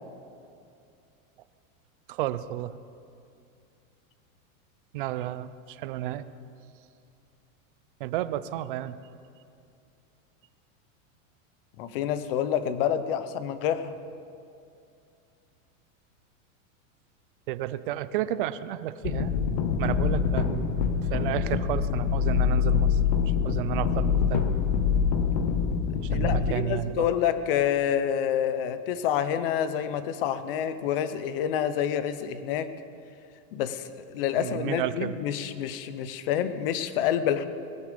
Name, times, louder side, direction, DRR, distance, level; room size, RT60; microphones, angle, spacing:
voice 1, 2.1-2.8 4.9-6.3 8.0-9.0 17.5-19.3 19.8-20.7 21.0-23.0 23.4-24.4 26.0-27.1 34.4-35.2, right 13 dB, 40° right, 14 dB, 0.5 m, -32 dB
voice 2, 11.8-13.9 26.1-32.7 33.5-37.4, left 9 dB, 40° left, 12 dB, 0.8 m, -28 dB
sound 1, 19.0-26.5, left 7 dB, 20° left, 0.5 m, -25 dB
20.5 x 12.0 x 5.2 m, 2.5 s
supercardioid pair, 180°, 41 cm